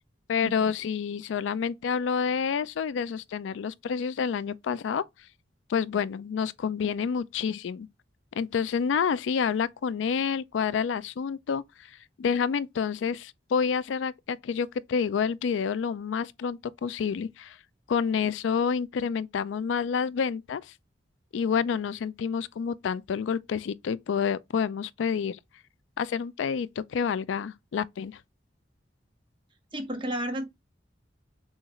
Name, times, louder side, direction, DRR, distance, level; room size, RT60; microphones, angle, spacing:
voice 1, 0.3-5.0 5.7-7.9 8.4-11.6 12.2-17.6 17.9-20.7 21.3-25.4 26.0-28.2, left 6 dB, 85° left, 0.4 m, -28 dB
voice 2, 29.7-30.5, equal, 25° right, 1.1 m, -32 dB
6.3 x 2.4 x 2.9 m
head